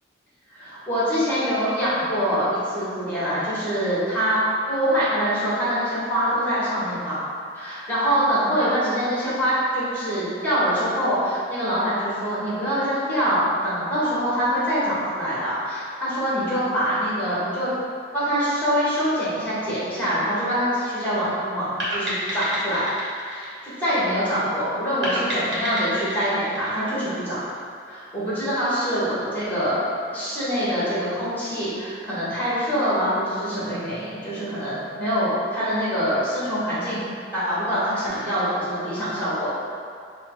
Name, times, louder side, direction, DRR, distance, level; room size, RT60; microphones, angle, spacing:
voice 1, 0.5-4.4 4.7-7.2 7.5-17.7 18.1-22.8 23.2-27.4 27.9-29.8 30.1-37.1 37.3-39.5, equal, 10° left, -10 dB, 1.4 m, -24 dB
sound 1, 21.8-24.3 25.0-27.6, equal, 75° right, 1.1 m, -29 dB
5.3 x 2.2 x 3.8 m, 2.3 s
head